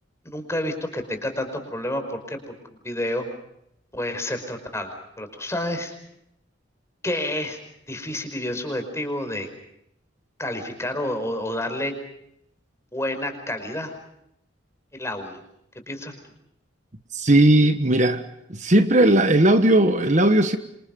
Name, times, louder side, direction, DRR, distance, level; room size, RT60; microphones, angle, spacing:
voice 1, 0.2-2.4 2.8-3.2 3.9-5.9 7.0-7.6 7.9-9.5 10.4-11.9 12.9-13.9 14.9-15.4 15.9-16.1, left 1 dB, 15° left, 7 dB, 5.2 m, -29 dB
voice 2, 17.1-18.2 18.5-20.6, right 1 dB, 40° right, 9 dB, 1.4 m, -17 dB
27.5 x 27.5 x 5.4 m, 0.78 s
head